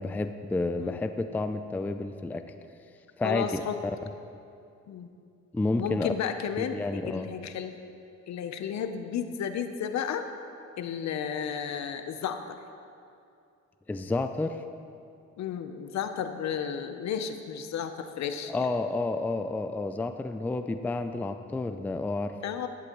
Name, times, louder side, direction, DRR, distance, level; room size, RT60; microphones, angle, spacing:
voice 1, 0.0-2.5 3.2-3.6 5.5-6.1 6.6-7.3 13.9-14.6 18.5-22.4, left 2 dB, 5° left, 8 dB, 0.3 m, -30 dB
voice 2, 3.2-3.8 4.9-5.1 5.8-6.8 7.1-7.8 8.3-10.3 10.8-12.6 15.4-18.7 22.4-22.7, left 8 dB, 65° left, 8 dB, 0.8 m, -33 dB
11.5 x 11.0 x 3.0 m, 2.5 s
cardioid pair, 90°, 30 cm